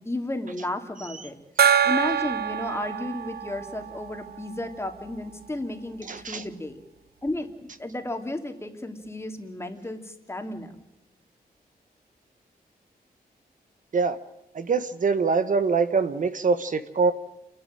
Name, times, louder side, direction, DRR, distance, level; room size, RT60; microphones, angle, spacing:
voice 1, 0.0-1.3 1.8-6.8 7.2-7.5 7.8-10.7, left 2 dB, 15° left, 2.7 m, -33 dB
Gong, 1.6-4.8, right 8 dB, 85° right, 0.7 m, -25 dB
voice 2, 6.0-6.4 13.9-14.2 14.5-17.1, right 4 dB, 55° right, 1.3 m, -24 dB
29.5 x 12.0 x 9.0 m
wide cardioid pair, 135°, 16 cm